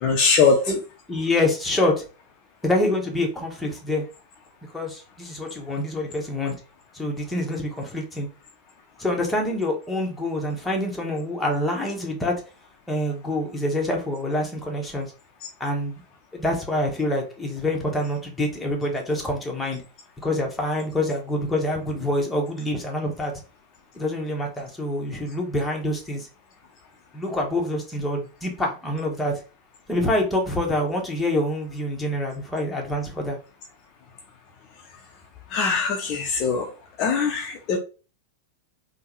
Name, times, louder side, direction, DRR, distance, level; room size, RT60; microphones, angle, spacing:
voice 1, 0.0-0.7 35.5-36.7 37.0-37.8, left 5 dB, 40° left, 0.5 m, -21 dB
voice 2, 1.1-2.0 2.6-4.0 4.7-6.6 6.9-8.3 9.0-12.3 12.9-15.1 15.6-16.0 16.3-19.8 20.2-23.3 24.0-26.3 27.1-29.3 29.9-33.4, left 1 dB, 5° left, 1.0 m, -26 dB
3.5 x 2.1 x 3.0 m
figure-of-eight pair, 90°, 0 cm